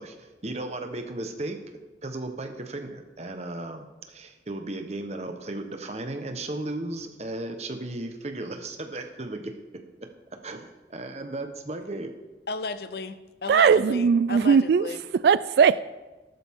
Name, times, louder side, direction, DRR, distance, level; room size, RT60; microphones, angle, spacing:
voice 1, 0.0-1.6 2.0-9.6 10.0-10.1 10.4-12.1, right 2 dB, 35° right, 6 dB, 1.1 m, -35 dB
voice 2, 12.5-15.0, left 3 dB, 55° left, 12 dB, 0.6 m, -34 dB
voice 3, 13.5-14.9 15.2-15.8, right 6 dB, 60° right, 17 dB, 0.3 m, -19 dB
14.0 x 12.0 x 3.7 m, 1.2 s
head